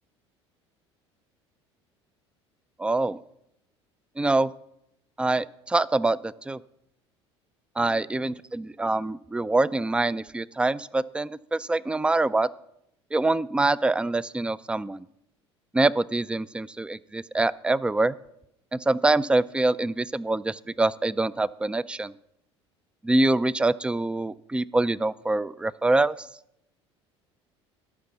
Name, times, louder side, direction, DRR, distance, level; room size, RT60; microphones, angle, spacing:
voice 1, 2.8-3.2 4.2-4.5 5.2-6.6 7.8-12.5 13.1-15.0 15.7-18.1 18.7-22.1 23.0-26.1, right 2 dB, 5° right, 19 dB, 0.3 m, -25 dB
13.0 x 5.9 x 6.9 m, 0.82 s
figure-of-eight pair, 65°, 15 cm